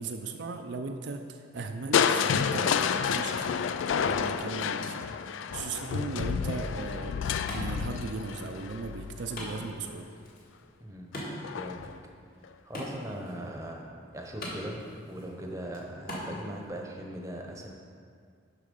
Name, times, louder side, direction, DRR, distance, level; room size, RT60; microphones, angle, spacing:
voice 1, 0.0-5.1 5.5-10.1, right 3 dB, 65° right, 5 dB, 0.4 m, -37 dB
Crushing, 1.9-9.9 11.4-11.9 12.4-12.5, left 7 dB, 85° left, 0.3 m, -30 dB
Wood, 6.7-16.7, equal, 50° left, 1.8 m, -44 dB
voice 2, 11.5-11.9 12.6-17.7, right 1 dB, 15° right, 1 dB, 0.8 m, -40 dB
11.5 x 4.1 x 5.3 m, 2.2 s
head